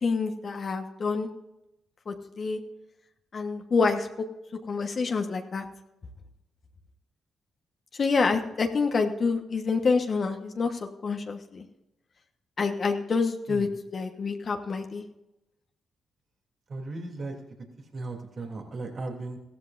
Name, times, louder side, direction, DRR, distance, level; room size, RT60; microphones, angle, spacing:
voice 1, 0.0-1.3 2.1-2.6 3.3-4.1 4.7-5.6 8.0-11.6 12.6-15.0, left 4 dB, 55° left, 4 dB, 1.3 m, -27 dB
voice 2, 16.7-17.3 17.9-19.4, right 2 dB, 55° right, 2 dB, 3.0 m, -36 dB
15.5 x 13.5 x 2.6 m, 0.92 s
supercardioid pair, 45°, 0 cm